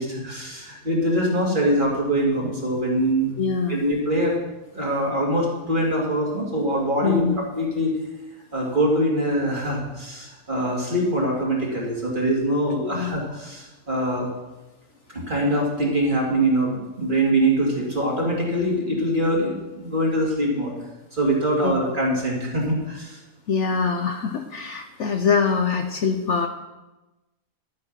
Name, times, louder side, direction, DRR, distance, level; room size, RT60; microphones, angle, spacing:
voice 1, 0.0-3.3 3.7-4.3 4.7-8.0 8.5-14.3 15.1-20.8 21.1-23.2, right 1 dB, 35° right, -2 dB, 2.8 m, -23 dB
voice 2, 3.4-3.9 7.0-7.3 12.9-13.1 21.6-21.7 23.5-26.5, left 5 dB, 60° left, 6 dB, 1.0 m, -23 dB
11.5 x 8.7 x 5.8 m, 1.1 s
omnidirectional pair, 1.6 m